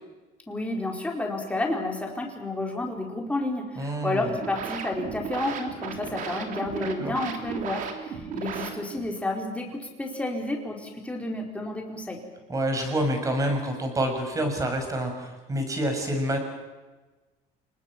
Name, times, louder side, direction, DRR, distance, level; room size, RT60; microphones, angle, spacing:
voice 1, 0.5-12.2, left 2 dB, 10° left, 1 dB, 4.5 m, -31 dB
voice 2, 3.8-4.3 6.8-7.2 12.5-16.4, right 1 dB, 20° right, 5 dB, 6.1 m, -27 dB
sound 1, 4.2-9.2, right 6 dB, 55° right, 3.4 m, -35 dB
28.5 x 19.5 x 7.5 m, 1.2 s
cardioid pair, 135°, 16 cm